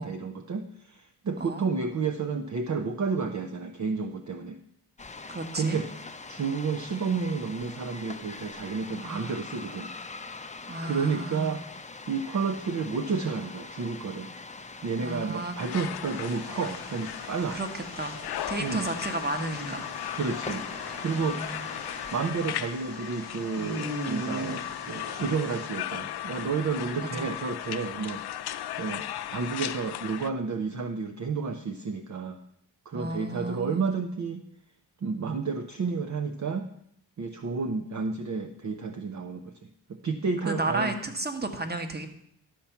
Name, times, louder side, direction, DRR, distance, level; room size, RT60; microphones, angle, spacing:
voice 1, 0.0-4.6 5.5-5.9 6.3-9.9 10.8-11.6 12.1-14.3 14.8-17.6 18.6-18.9 20.1-20.7 21.0-21.6 22.1-28.2 28.8-32.4 32.9-34.4 35.0-36.7 37.2-39.6 39.9-40.9, right 5 dB, 45° right, 7 dB, 0.7 m, -31 dB
voice 2, 1.4-1.7 5.3-5.8 9.0-9.4 10.7-11.6 15.0-15.5 17.5-18.2 18.5-19.9 21.3-21.7 27.0-27.3 32.9-33.9 40.4-42.1, right 2 dB, 25° right, 7 dB, 1.3 m, -33 dB
sound 1, 5.0-22.3, left 3 dB, 20° left, 0.6 m, -43 dB
sound 2, 15.6-30.3, left 12 dB, 70° left, 0.5 m, -37 dB
sound 3, 16.0-25.7, right 1 dB, 60° right, 2.7 m, -41 dB
12.0 x 4.3 x 7.0 m, 0.71 s
cardioid pair, 75°, 40 cm